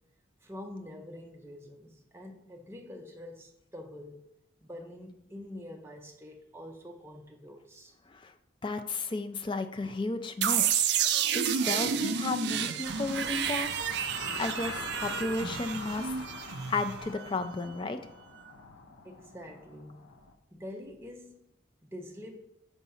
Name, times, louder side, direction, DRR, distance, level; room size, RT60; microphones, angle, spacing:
voice 1, 0.4-4.2 4.6-7.9 19.0-20.1 20.5-21.4 21.8-22.5, left 1 dB, 10° right, 2 dB, 0.6 m, -46 dB
voice 2, 8.6-10.9 11.3-13.7 14.4-16.2 16.7-18.0, left 3 dB, 25° left, 7 dB, 0.3 m, -33 dB
sound 1, 10.4-17.2, right 8 dB, 55° right, 0.4 m, -30 dB
sound 2, 12.8-20.3, left 3 dB, 90° left, 0.6 m, -44 dB
4.7 x 4.0 x 5.5 m, 0.81 s
head